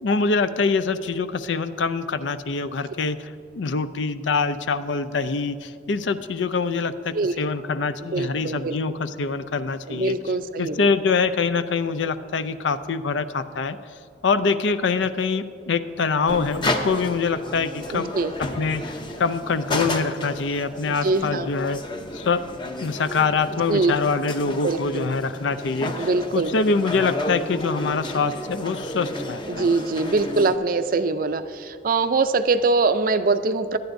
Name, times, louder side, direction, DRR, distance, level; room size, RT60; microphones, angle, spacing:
voice 1, 0.0-3.2 3.5-10.1 10.6-13.8 14.2-18.1 18.4-18.9 19.2-21.8 22.1-22.4 22.8-26.1 26.3-29.7, left 4 dB, 80° left, 12 dB, 0.5 m, -24 dB
voice 2, 8.0-8.8 9.9-10.9 17.9-18.3 20.9-21.5 23.5-24.0 24.6-25.1 26.0-26.5 29.5-33.8, right 3 dB, 50° right, 11 dB, 0.5 m, -23 dB
sound 1, 16.3-30.6, left 1 dB, 25° left, 0.7 m, -32 dB
18.0 x 11.5 x 2.6 m, 2.4 s
head